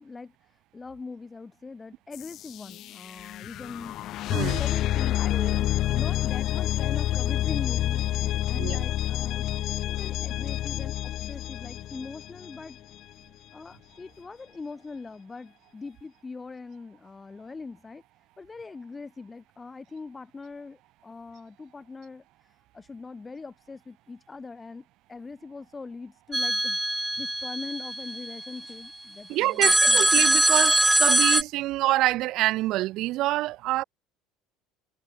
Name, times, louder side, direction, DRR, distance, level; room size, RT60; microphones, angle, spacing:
voice 1, 0.0-3.9 4.3-9.5 9.8-12.8 13.5-18.0 18.4-30.1, left 4 dB, 20° left, 5.3 m, -42 dB
sound 1, 2.1-12.9, left 14 dB, 60° left, 0.6 m, -28 dB
voice 2, 4.3-4.6 8.5-8.8 29.3-33.8, right 17 dB, 65° right, 1.0 m, -26 dB
sound 2, 26.3-28.6 29.6-31.4, right 1 dB, 5° right, 1.1 m, -22 dB
supercardioid pair, 100°, 0 cm